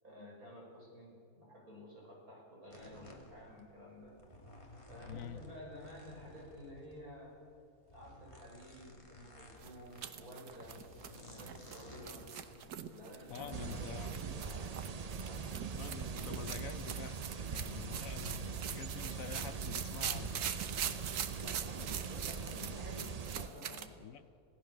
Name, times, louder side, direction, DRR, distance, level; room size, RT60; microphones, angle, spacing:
voice 1, 0.0-4.2 4.9-7.4 7.9-10.8 11.2-12.3 12.9-14.8 15.2-15.6 21.3-23.8, left 1 dB, 70° right, -2 dB, 6.6 m, -52 dB
sound 1, 2.7-14.1, left 1 dB, 20° left, 2.4 m, -55 dB
voice 2, 5.1-5.4 13.3-14.1 15.8-17.2 17.5-20.5 24.0-24.2, left 8 dB, 65° left, 13 dB, 1.0 m, -47 dB
sound 2, 9.6-23.9, right 9 dB, 90° right, 1.5 m, -43 dB
sound 3, 13.5-23.5, right 6 dB, 50° right, 0.4 m, -42 dB
26.0 x 17.0 x 6.6 m, 2.6 s
omnidirectional pair, 1.6 m